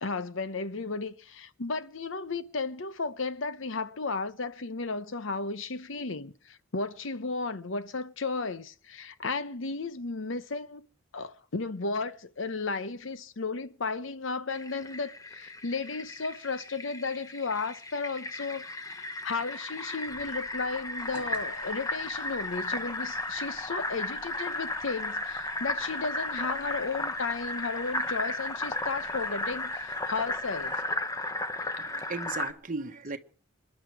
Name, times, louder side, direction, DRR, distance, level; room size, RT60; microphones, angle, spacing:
voice 1, 0.0-10.8 11.1-30.8 31.8-31.9, left 4 dB, 65° left, 0.9 m, -34 dB
Fill (with liquid), 14.5-32.5, left 2 dB, 15° left, 1.0 m, -35 dB
sound 1, 20.1-30.9, right 2 dB, 5° right, 2.8 m, -57 dB
voice 2, 31.8-33.2, right 3 dB, 40° right, 1.3 m, -36 dB
26.5 x 11.0 x 4.8 m
head